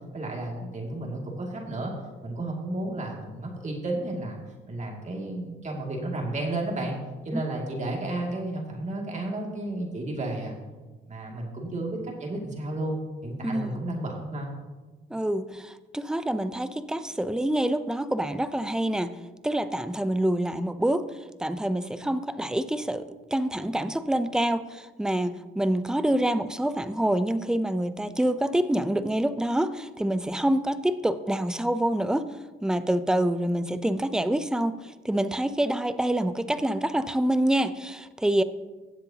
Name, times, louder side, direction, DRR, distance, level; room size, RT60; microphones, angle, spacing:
voice 1, 0.1-1.9 2.2-4.4 4.7-6.9 7.2-10.6 11.1-14.5, right 2 dB, 35° right, -1 dB, 2.5 m, -32 dB
voice 2, 13.4-13.8 15.1-21.0 21.4-23.0 23.3-32.2 32.6-38.4, right 1 dB, 5° right, 12 dB, 0.5 m, -26 dB
17.0 x 7.7 x 2.9 m, 1.3 s
cardioid pair, 90°, 20 cm